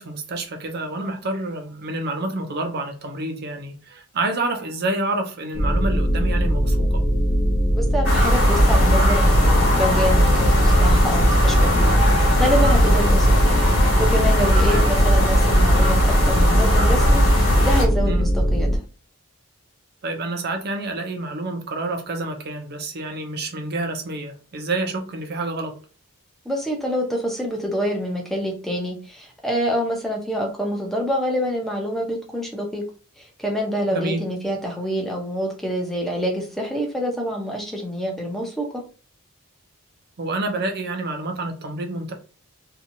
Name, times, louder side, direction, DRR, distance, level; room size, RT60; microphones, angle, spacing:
voice 1, 0.0-7.0 14.7-14.9 18.0-18.3 20.0-25.8 33.9-34.2 40.2-42.1, right 2 dB, 50° right, 0.5 m, -28 dB
sound 1, 5.5-18.8, equal, 40° left, 0.7 m, -20 dB
voice 2, 7.7-13.6 14.0-18.8 26.4-32.8 33.2-38.8, equal, ahead, 0.6 m, -26 dB
sound 2, 8.0-17.8, equal, 75° left, 1.2 m, -19 dB
2.8 x 2.3 x 2.6 m
head